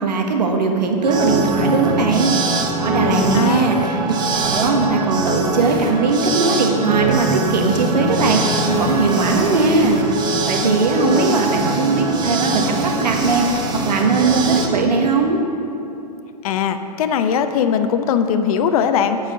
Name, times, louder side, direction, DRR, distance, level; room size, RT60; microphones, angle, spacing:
voice 1, 0.0-2.3 2.8-4.0 4.5-15.4, right 4 dB, 85° right, 2 dB, 1.4 m, -19 dB
sound 1, 1.0-14.7, right 2 dB, 20° right, 1.0 m, -22 dB
voice 2, 3.0-3.7 10.6-11.3 16.4-19.2, left 7 dB, 60° left, 8 dB, 0.7 m, -20 dB
8.0 x 5.6 x 7.8 m, 2.8 s
hypercardioid pair, 130°, 21 cm